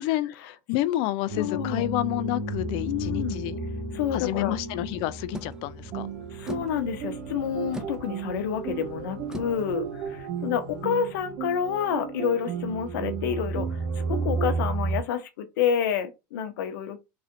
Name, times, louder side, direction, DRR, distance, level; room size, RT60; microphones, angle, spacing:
voice 1, 0.0-3.6 4.1-6.1, left 16 dB, 60° left, 0.4 m, -29 dB
sound 1, 1.3-15.0, right 3 dB, 90° right, 1.5 m, -34 dB
voice 2, 1.4-1.9 2.9-3.4 3.9-4.6 6.3-17.0, left 8 dB, 75° left, 0.8 m, -29 dB
sound 2, 5.3-10.9, right 1 dB, 5° right, 0.7 m, -44 dB
sound 3, 5.9-14.6, right 9 dB, 50° right, 0.4 m, -36 dB
3.8 x 3.2 x 2.5 m
hypercardioid pair, 95°, 11 cm